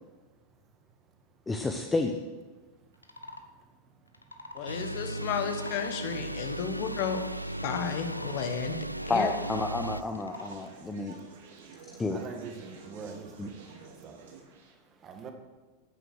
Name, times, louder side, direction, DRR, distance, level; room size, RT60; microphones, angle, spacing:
voice 1, 1.5-2.1 9.1-11.1 12.0-12.2 13.4-13.5, left 3 dB, 15° left, 4 dB, 0.9 m, -30 dB
sound 1, 2.9-3.5 4.1-4.7 5.4-6.0 6.6-7.3 8.0-8.4 9.0-9.5 10.1-10.6, left 1 dB, 80° left, 1.0 m, -45 dB
voice 2, 4.5-7.2 7.6-8.8 9.1-9.3, left 7 dB, 45° left, 8 dB, 1.3 m, -33 dB
sound 2, 4.7-10.0, right 1 dB, 90° right, 0.3 m, -36 dB
Conversation, 6.3-14.7, right 4 dB, 55° right, 2.4 m, -52 dB
voice 3, 12.1-13.5 14.0-14.1 15.0-15.3, right 5 dB, 30° right, 5 dB, 1.8 m, -43 dB
13.5 x 9.2 x 6.3 m, 1.3 s
figure-of-eight pair, 90°, 0 cm